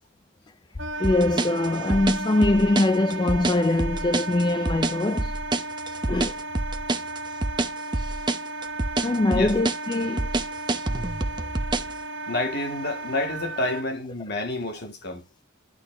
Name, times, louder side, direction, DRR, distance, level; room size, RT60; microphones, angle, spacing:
Wind instrument woodwind instrument, 0.8-13.8, right 2 dB, 65° right, 0.9 m, -35 dB
voice 1, 1.0-5.3 6.1-6.4 9.0-10.3, left 2 dB, 25° left, 0.4 m, -23 dB
sound 1, 1.0-12.0, right 2 dB, 25° right, 0.7 m, -27 dB
voice 2, 12.3-15.2, left 2 dB, 55° left, 1.9 m, -29 dB
11.5 x 4.1 x 3.3 m
head